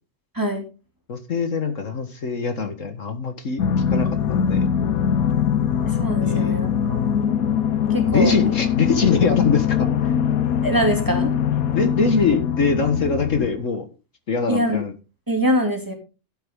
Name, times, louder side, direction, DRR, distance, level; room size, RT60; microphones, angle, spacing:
voice 1, 1.1-3.6 3.9-4.7 6.2-6.6 8.1-10.1 11.7-13.8 14.3-14.9, left 5 dB, 60° left, 8 dB, 1.7 m, -23 dB
sound 1, 3.6-13.5, left 8 dB, 75° left, 1.3 m, -22 dB
voice 2, 5.9-7.0 7.9-8.4 10.6-11.3 14.5-14.8 15.3-15.9, equal, 15° right, 3 dB, 2.6 m, -23 dB
12.0 x 9.0 x 3.7 m, 0.31 s
omnidirectional pair, 1.5 m